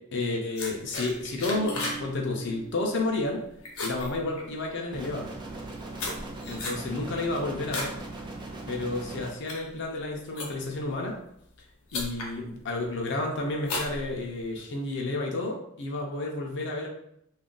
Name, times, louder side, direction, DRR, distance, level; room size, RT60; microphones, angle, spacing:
voice 1, 0.1-3.4 3.8-5.3 6.5-7.9 8.7-11.2 11.9-16.9, left 2 dB, 55° left, 0 dB, 0.4 m, -31 dB
sound 1, 0.6-2.0 2.3-2.7 3.1-3.4 3.6-4.8 5.5-8.0 8.4-8.7 9.2-10.8 11.5-11.6 11.9-12.3 12.8-13.2 13.6-14.6, left 2 dB, 75° left, 0.8 m, -35 dB
Bass guitar, 1.5-4.0, right 6 dB, 45° right, 0.8 m, -44 dB
sound 2, 4.9-9.3, right 2 dB, 20° right, 0.4 m, -39 dB
2.4 x 2.2 x 3.7 m, 0.73 s
head